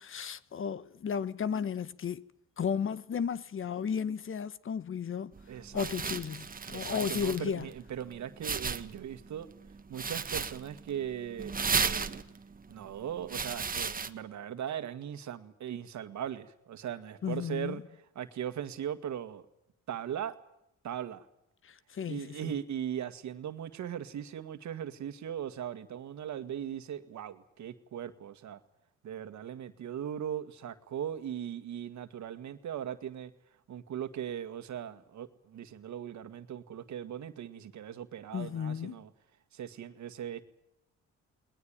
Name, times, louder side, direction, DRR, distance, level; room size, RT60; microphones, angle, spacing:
voice 1, 0.0-2.2 2.6-5.3 5.7-7.7 17.2-17.8 21.6-22.5 38.3-39.0, left 7 dB, 45° left, 0.9 m, -34 dB
sound 1, 5.3-14.1, right 5 dB, 30° right, 1.4 m, -36 dB
voice 2, 5.5-6.1 6.7-9.5 9.9-12.2 12.7-17.8 18.2-19.4 19.9-20.3 20.8-21.3 22.1-28.6 29.0-33.3 33.7-39.1 39.5-40.4, right 9 dB, 70° right, 1.9 m, -39 dB
20.5 x 20.0 x 8.9 m
cardioid pair, 90°, 30 cm